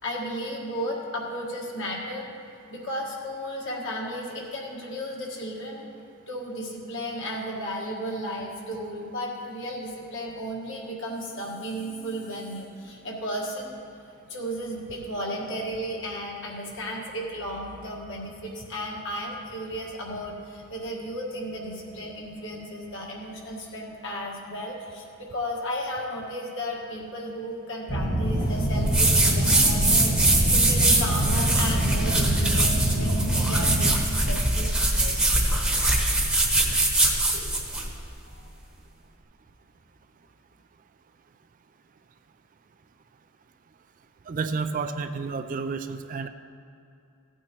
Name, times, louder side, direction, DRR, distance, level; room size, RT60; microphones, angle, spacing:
voice 1, 0.0-2.3 2.7-5.9 6.3-13.7 14.3-35.6 36.7-38.0, equal, 55° left, -2 dB, 1.6 m, -34 dB
sound 1, 27.9-34.0, right 1 dB, 40° left, 1.6 m, -25 dB
sound 2, 28.8-37.9, right 2 dB, 5° right, 1.0 m, -23 dB
voice 2, 44.3-46.3, right 4 dB, 35° right, 9 dB, 0.3 m, -30 dB
15.5 x 8.9 x 3.0 m, 2.6 s
head